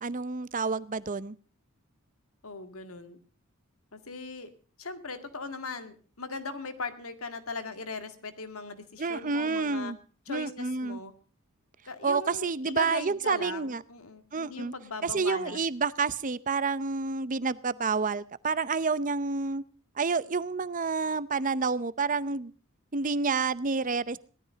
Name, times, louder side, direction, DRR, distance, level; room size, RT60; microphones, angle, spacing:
voice 1, 0.0-1.3 9.0-10.0 10.3-11.0 12.0-13.8 14.3-14.7 15.0-19.6 20.0-22.5 22.9-24.2, right 4 dB, 35° right, 17 dB, 0.7 m, -29 dB
voice 2, 2.4-3.2 3.9-4.5 4.8-9.9 10.3-11.1 11.9-15.6, left 3 dB, 75° left, 8 dB, 2.1 m, -39 dB
17.5 x 13.0 x 5.1 m, 0.39 s
head